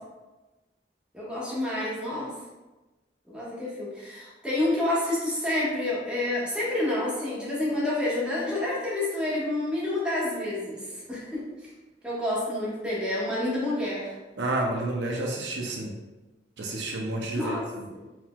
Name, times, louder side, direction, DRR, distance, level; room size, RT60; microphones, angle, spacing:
voice 1, 1.1-2.3 3.3-11.5 12.0-14.1 17.3-18.0, left 1 dB, 5° right, -8 dB, 1.3 m, -29 dB
voice 2, 14.4-15.9 16.6-17.9, right 2 dB, 80° right, 0 dB, 0.6 m, -30 dB
4.4 x 3.7 x 2.3 m, 1.1 s
head